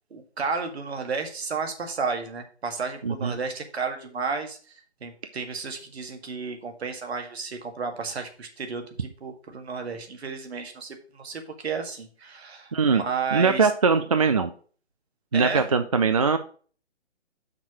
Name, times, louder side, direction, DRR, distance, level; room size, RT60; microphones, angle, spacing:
voice 1, 0.1-4.7 5.0-13.7 15.3-15.7, right 5 dB, 65° right, 4 dB, 1.8 m, -32 dB
voice 2, 3.0-3.4 12.7-13.0 13.3-14.5 15.3-16.4, right 5 dB, 35° right, 8 dB, 0.4 m, -21 dB
6.0 x 4.6 x 6.0 m, 0.42 s
figure-of-eight pair, 140°, 35 cm